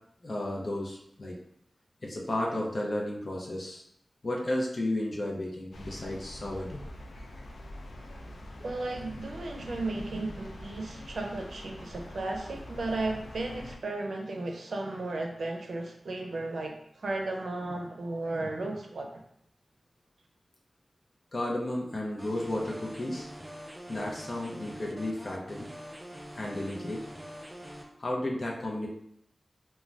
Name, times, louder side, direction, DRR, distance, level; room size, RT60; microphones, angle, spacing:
voice 1, 0.2-1.4 2.0-3.8 4.2-6.9 21.3-23.3 23.9-25.7 26.4-27.0 28.0-28.9, left 1 dB, 50° left, -2 dB, 0.6 m, -33 dB
sound 1, 5.7-13.8, left 1 dB, 85° left, 0.3 m, -44 dB
voice 2, 8.6-19.1, right 2 dB, 75° right, 2 dB, 0.5 m, -34 dB
sound 2, 22.2-27.8, equal, 10° right, 0.4 m, -44 dB
2.5 x 2.2 x 3.2 m, 0.72 s
wide cardioid pair, 80°, 0 cm